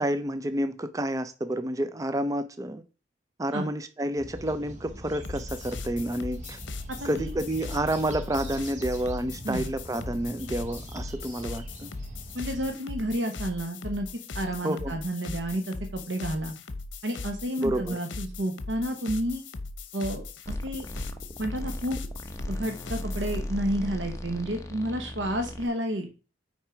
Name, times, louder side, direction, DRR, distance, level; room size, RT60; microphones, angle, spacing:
voice 1, 0.0-2.8 3.4-6.6 7.0-11.9 14.6-14.9 17.6-18.0, right 1 dB, 20° right, 0.4 m, -29 dB
sound 1, 4.1-12.7, equal, 40° right, 1.1 m, -43 dB
sound 2, 5.2-23.5, left 3 dB, 75° left, 0.8 m, -39 dB
voice 2, 7.0-7.3 9.4-9.7 12.3-14.1 14.3-16.5 17.0-19.4 19.9-20.3 20.6-20.9 21.4-22.0 22.5-26.1, right 1 dB, 75° right, 1.1 m, -30 dB
sound 3, 20.5-25.7, left 1 dB, 15° left, 0.8 m, -37 dB
5.7 x 4.6 x 4.9 m
head